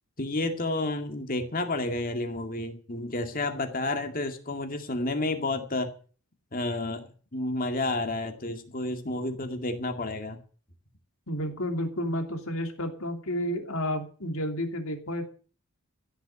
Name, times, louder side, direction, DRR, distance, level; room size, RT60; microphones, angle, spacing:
voice 1, 0.2-5.9 6.5-7.0 7.3-10.4, left 2 dB, 40° left, 6 dB, 2.1 m, -30 dB
voice 2, 11.3-15.3, equal, 70° left, 5 dB, 2.9 m, -31 dB
15.5 x 7.2 x 8.9 m, 0.42 s
head